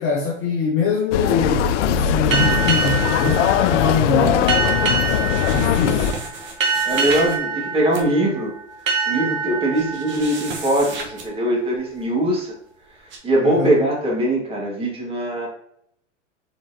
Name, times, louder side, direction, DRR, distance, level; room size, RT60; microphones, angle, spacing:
voice 1, 0.0-4.5 5.4-6.1 13.4-13.8, left 4 dB, 35° left, -1 dB, 0.9 m, -23 dB
sound 1, 1.1-6.1, left 9 dB, 70° left, 0.5 m, -20 dB
sound 2, 2.3-11.6, right 5 dB, 90° right, 1.2 m, -26 dB
sound 3, 5.0-7.4 7.7-8.0 8.8-8.9 9.1-9.2 9.7-11.3 11.7-12.0 13.1-13.2, right 3 dB, 30° right, 1.1 m, -34 dB
voice 2, 6.8-8.5 8.8-12.5 12.9-15.5, right 1 dB, 15° right, -3 dB, 2.0 m, -22 dB
4.4 x 4.3 x 2.8 m, 0.70 s
hypercardioid pair, 110°, 38 cm